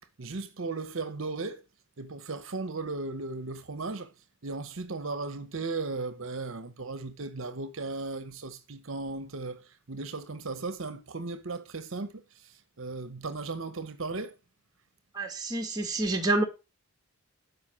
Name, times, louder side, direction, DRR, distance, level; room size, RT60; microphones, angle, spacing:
voice 1, 0.2-1.6 2.0-4.1 4.4-14.3, right 3 dB, 60° right, 0.9 m, -36 dB
voice 2, 15.1-16.4, right 2 dB, 20° right, 1.9 m, -28 dB
12.5 x 5.2 x 6.1 m
head